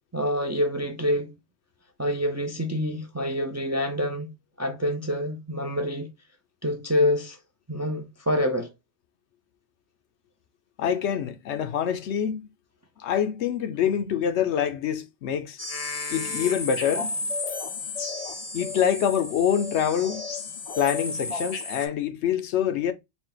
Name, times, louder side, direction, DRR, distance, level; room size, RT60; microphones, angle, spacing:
voice 1, 0.1-1.3 2.0-4.3 4.6-6.1 6.6-7.4 7.7-8.7, left 1 dB, 30° right, 0.3 m, -26 dB
voice 2, 10.8-12.4 13.0-15.6 16.1-17.1 18.5-20.2 20.8-22.9, left 9 dB, 85° left, 0.9 m, -25 dB
sound 1, 15.6-21.9, left 3 dB, 45° left, 0.5 m, -33 dB
4.0 x 2.3 x 3.8 m
omnidirectional pair, 1.1 m